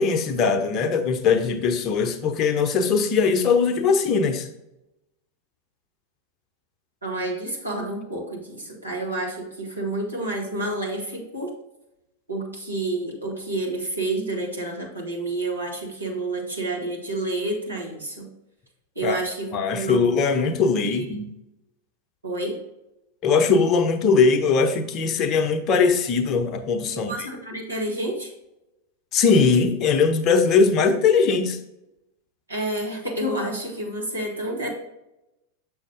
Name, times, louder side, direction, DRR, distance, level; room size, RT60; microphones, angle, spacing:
voice 1, 0.0-4.5 19.0-19.2 19.5-21.3 23.2-27.3 29.1-31.6, left 5 dB, 35° left, 8 dB, 0.8 m, -20 dB
voice 2, 7.0-11.5 12.3-18.3 19.0-19.5 19.7-20.0 20.8-21.1 22.2-22.6 26.9-28.3 32.5-34.7, right 2 dB, 80° right, -3 dB, 1.9 m, -29 dB
7.1 x 6.3 x 2.6 m, 0.92 s
figure-of-eight pair, 90°, 0 cm